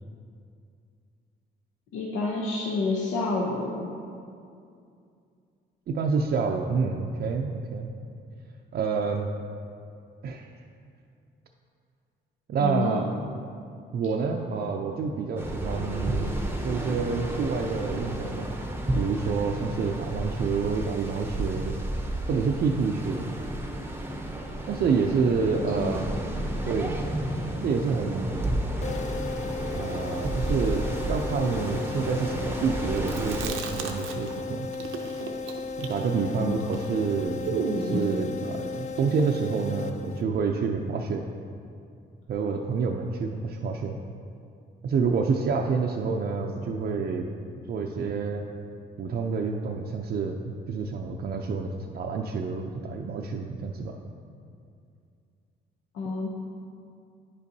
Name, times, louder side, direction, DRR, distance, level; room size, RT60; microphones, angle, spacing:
voice 1, 1.9-3.9 12.6-13.0 25.5-26.0 36.3-36.5 55.9-56.3, left 3 dB, 85° left, -3 dB, 0.7 m, -29 dB
voice 2, 5.9-7.9 8.7-9.3 10.2-10.5 12.5-13.1 13.9-16.3 16.6-18.6 18.9-21.8 22.3-23.3 24.7-26.1 26.7-27.0 27.5-28.5 29.7-34.7 35.8-41.2 42.3-44.0 44.8-47.3 47.7-48.5 49.0-54.0, right 5 dB, 50° right, 1 dB, 0.5 m, -28 dB
sound 1, 15.4-33.5, right 1 dB, 10° right, 0.7 m, -32 dB
sound 2, 28.8-40.5, left 4 dB, 35° left, 0.4 m, -36 dB
Chewing mastication, 33.0-34.4 34.7-38.1, right 4 dB, 90° right, 0.7 m, -34 dB
9.6 x 5.2 x 2.7 m, 2.4 s
cardioid pair, 90°, 20 cm